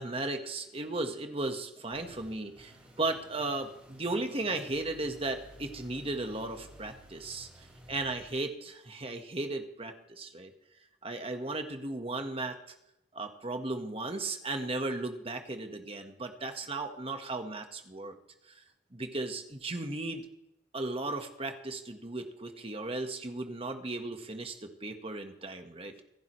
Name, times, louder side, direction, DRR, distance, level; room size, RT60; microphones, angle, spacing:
voice 1, 0.0-10.5 11.0-12.6 13.1-18.2 18.5-18.6 18.9-20.3 20.7-25.9, right 2 dB, 30° right, 5 dB, 1.4 m, -36 dB
sound 1, 1.9-8.3, equal, 10° right, 6.3 m, -54 dB
26.5 x 10.5 x 3.2 m, 0.84 s
head